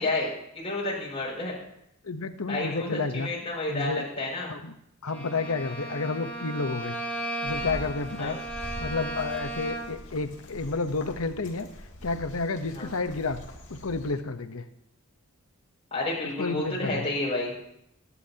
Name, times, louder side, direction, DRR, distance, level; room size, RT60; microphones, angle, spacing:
voice 1, 0.0-1.6 2.5-4.5 8.2-8.3 12.7-12.9 15.9-17.5, left 2 dB, 30° left, -4 dB, 5.8 m, -30 dB
voice 2, 2.0-3.3 3.7-4.1 4.5-4.7 5.0-7.0 7.4-8.4 8.8-11.7 12.0-13.4 13.7-14.6 16.4-17.1, left 3 dB, 75° left, 9 dB, 0.9 m, -30 dB
Bowed string instrument, 5.1-10.1, right 1 dB, 10° left, 2.3 m, -35 dB
sound 1, 7.4-14.2, equal, 55° left, 2.6 m, -43 dB
24.0 x 11.0 x 2.9 m, 0.75 s
head